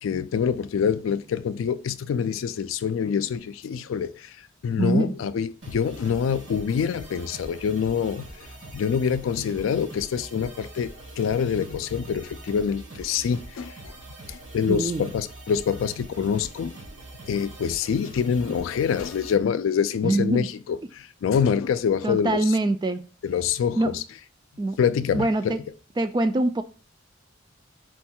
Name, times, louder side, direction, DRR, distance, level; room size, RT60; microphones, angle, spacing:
voice 1, 0.0-4.3 4.6-8.3 8.7-14.0 14.3-16.8 17.3-22.4 23.2-24.0 24.8-25.6, left 7 dB, 85° left, 0.3 m, -26 dB
voice 2, 4.8-5.2 14.7-15.1 20.0-20.5 22.0-23.0 23.8-24.0 24.6-24.8 25.1-25.6 26.0-26.6, right 2 dB, 20° right, 0.3 m, -24 dB
sound 1, 5.6-19.3, right 1 dB, 70° right, 1.4 m, -43 dB
4.5 x 2.3 x 4.2 m
head